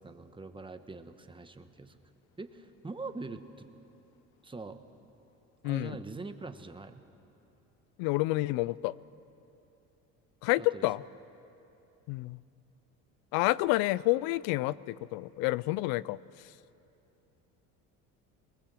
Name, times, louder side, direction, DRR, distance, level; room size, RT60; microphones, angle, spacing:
voice 1, 0.0-2.0 2.4-3.7 4.4-4.8 5.6-7.0 10.6-10.9, right 3 dB, 15° right, 8 dB, 1.2 m, -43 dB
voice 2, 5.6-6.0 8.0-9.0 10.4-11.0 12.1-12.4 13.3-16.5, left 19 dB, 80° left, 21 dB, 0.5 m, -29 dB
22.0 x 20.5 x 7.6 m, 2.9 s
cardioid pair, 105°, 36 cm